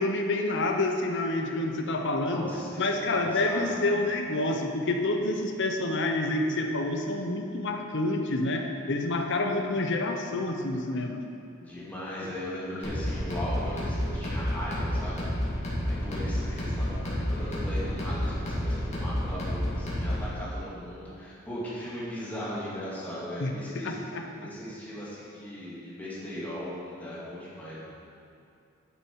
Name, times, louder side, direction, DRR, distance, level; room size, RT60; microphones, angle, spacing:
voice 1, 0.0-2.5 2.8-11.2 23.4-23.5 23.8-24.2, left 2 dB, 55° left, 4 dB, 0.9 m, -28 dB
voice 2, 2.2-4.0 11.6-15.3 15.8-24.0 24.4-27.9, equal, 10° left, -9 dB, 2.4 m, -38 dB
sound 1, 12.8-20.3, equal, 30° left, 2.3 m, -30 dB
10.5 x 6.2 x 4.7 m, 2.6 s
head